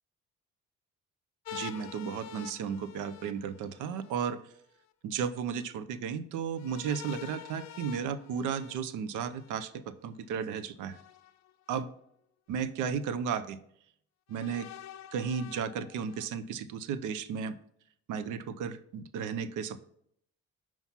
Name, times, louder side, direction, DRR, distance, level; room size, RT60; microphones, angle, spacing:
sound 1, 1.4-4.1 6.5-9.6 10.9-11.8 12.6-12.7 14.3-16.3, left 12 dB, 65° left, 0.5 m, -47 dB
voice 1, 1.5-4.4 5.0-11.0 11.7-11.9 12.5-13.6 14.3-14.7 15.1-17.6 18.1-19.8, right 7 dB, 85° right, 13 dB, 0.6 m, -34 dB
5.7 x 4.6 x 5.6 m, 0.69 s
cardioid pair, 90°, 30 cm